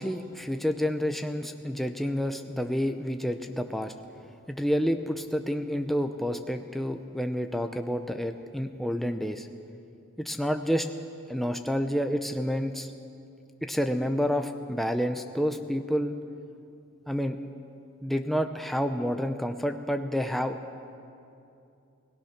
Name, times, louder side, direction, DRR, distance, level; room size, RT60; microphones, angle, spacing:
voice 1, 0.0-3.9 4.5-9.5 10.2-10.9 11.3-12.9 13.6-16.1 17.1-17.4 18.0-20.6, equal, ahead, 6 dB, 0.6 m, -29 dB
29.5 x 18.0 x 5.9 m, 2.7 s
head